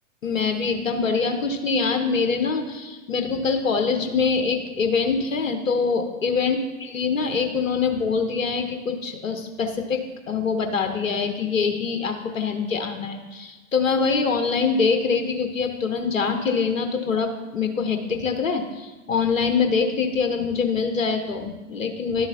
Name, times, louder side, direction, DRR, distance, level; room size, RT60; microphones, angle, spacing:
voice 1, 0.2-22.3, left 5 dB, 80° left, 6 dB, 1.0 m, -24 dB
11.0 x 7.0 x 2.7 m, 1.2 s
figure-of-eight pair, 100°, 39 cm